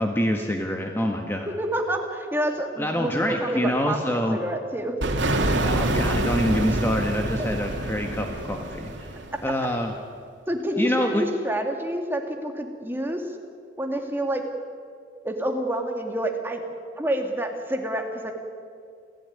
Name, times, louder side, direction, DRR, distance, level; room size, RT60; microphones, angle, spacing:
voice 1, 0.0-1.5 2.8-4.4 5.6-9.1 9.4-9.9 10.8-11.2, equal, 15° left, 2 dB, 1.5 m, -26 dB
voice 2, 1.5-4.9 9.4-9.7 10.5-13.4 13.8-14.4 15.2-16.6 17.0-18.3, right 1 dB, 10° right, 2 dB, 2.5 m, -28 dB
sound 1, 5.0-9.7, right 1 dB, 85° right, 2.7 m, -26 dB
28.5 x 16.0 x 9.7 m, 2.2 s
head